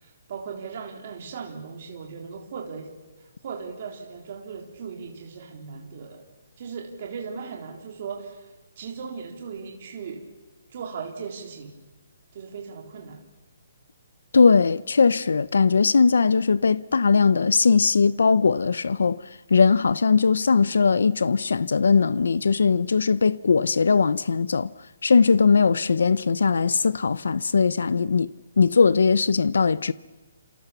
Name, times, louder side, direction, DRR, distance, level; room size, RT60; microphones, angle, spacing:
voice 1, 0.0-2.9 3.4-6.2 6.6-8.5 8.8-10.2 10.7-11.7 12.3-13.2, right 6 dB, 35° right, 3.9 m, -37 dB
voice 2, 14.3-19.2 19.5-24.7 25.0-29.9, left 5 dB, 90° left, 0.8 m, -20 dB
30.0 x 27.5 x 7.0 m
hypercardioid pair, 175°, 0 cm